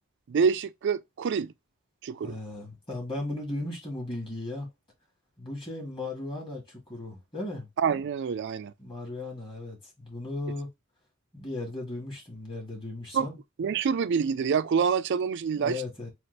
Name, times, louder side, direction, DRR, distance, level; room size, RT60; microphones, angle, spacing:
voice 1, 0.3-1.5 2.0-2.4 7.8-8.7 13.1-13.3 13.6-15.8, right 6 dB, 55° right, 0.3 m, -26 dB
voice 2, 2.2-4.7 5.4-7.7 8.8-10.7 11.3-13.4 15.6-16.1, left 2 dB, 25° left, 1.8 m, -36 dB
4.3 x 2.4 x 3.9 m
head